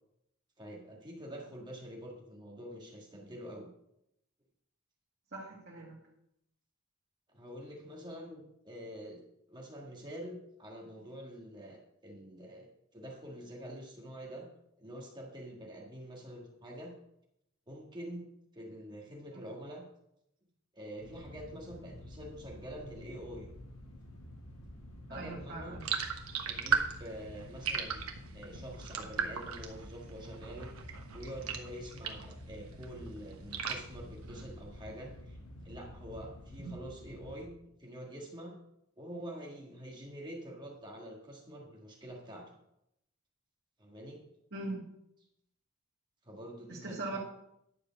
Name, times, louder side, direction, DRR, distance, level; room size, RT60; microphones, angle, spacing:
voice 1, 0.6-3.7 7.3-9.2 9.5-14.5 14.8-16.9 17.7-19.8 20.7-23.5 25.1-25.8 26.5-28.1 28.3-30.7 31.1-38.6 39.0-42.5 43.8-44.2 46.2-47.2, equal, 20° right, -1 dB, 1.7 m, -46 dB
voice 2, 5.3-6.0 25.1-25.9 36.6-36.7 44.5-44.8 46.7-47.2, right 2 dB, 50° right, -6 dB, 2.1 m, -40 dB
sound 1, 21.0-37.5, equal, 80° left, 1.5 m, -50 dB
sound 2, 25.8-32.4 32.7-34.8, right 6 dB, 90° right, 1.2 m, -37 dB
11.0 x 4.9 x 7.0 m, 0.79 s
head